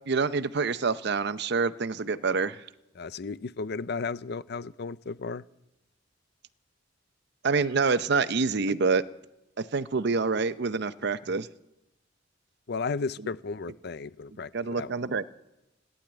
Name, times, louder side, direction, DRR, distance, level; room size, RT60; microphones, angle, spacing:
voice 1, 0.1-2.6 7.4-9.0 9.6-11.5 14.5-15.4, right 4 dB, 60° right, 14 dB, 0.7 m, -27 dB
voice 2, 3.0-5.4 12.7-15.0, left 4 dB, 60° left, 17 dB, 0.5 m, -34 dB
15.0 x 10.5 x 8.8 m, 0.93 s
head